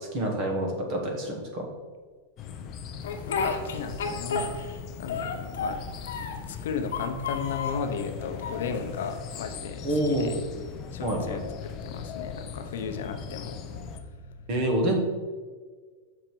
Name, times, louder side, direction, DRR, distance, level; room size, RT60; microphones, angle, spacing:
voice 1, 0.1-1.7 4.1-4.2 9.8-10.3 11.0-11.4 14.5-15.0, right 1 dB, 30° right, 1 dB, 1.3 m, -27 dB
sound 1, 2.4-14.0, left 7 dB, 25° left, 0.5 m, -39 dB
Speech, 3.0-4.8 5.1-6.5 6.9-7.8 8.4-9.2, left 5 dB, 85° left, 1.1 m, -32 dB
voice 2, 3.7-4.6 5.0-5.8 6.2-10.3 10.9-11.4 11.8-14.4, left 6 dB, 70° left, 5 dB, 0.8 m, -35 dB
6.6 x 5.1 x 4.5 m, 1.5 s
supercardioid pair, 175°, 0 cm